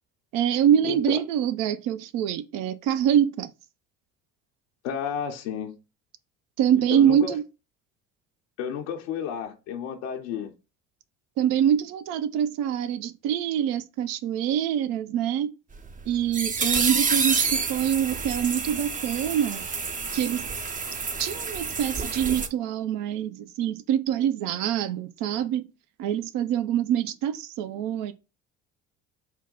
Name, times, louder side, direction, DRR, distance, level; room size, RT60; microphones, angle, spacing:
voice 1, 0.3-3.5 6.6-7.4 11.4-15.5 16.1-19.6 20.1-20.4 21.2-25.6 26.0-28.1, right 10 dB, 70° right, 0.6 m, -25 dB
voice 2, 0.8-1.2 4.8-5.8 6.7-7.3 8.6-10.5, left 8 dB, 80° left, 0.7 m, -32 dB
sound 1, 15.7-22.5, right 5 dB, 25° right, 0.5 m, -28 dB
4.5 x 2.2 x 3.7 m
hypercardioid pair, 65°, 35 cm